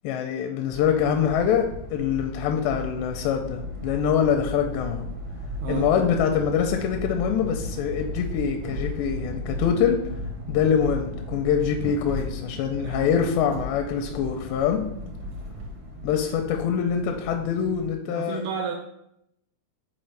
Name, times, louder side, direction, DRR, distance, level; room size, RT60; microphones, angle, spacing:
voice 1, 0.0-5.1 5.7-10.0 10.5-14.8 16.0-18.4, left 8 dB, 85° left, 4 dB, 2.7 m, -24 dB
sound 1, 0.6-17.9, left 1 dB, 70° right, 1.9 m, -35 dB
voice 2, 5.6-5.9 12.8-13.2 18.1-18.7, right 7 dB, 85° right, 2 dB, 2.2 m, -32 dB
7.0 x 4.1 x 3.3 m, 0.77 s
omnidirectional pair, 4.9 m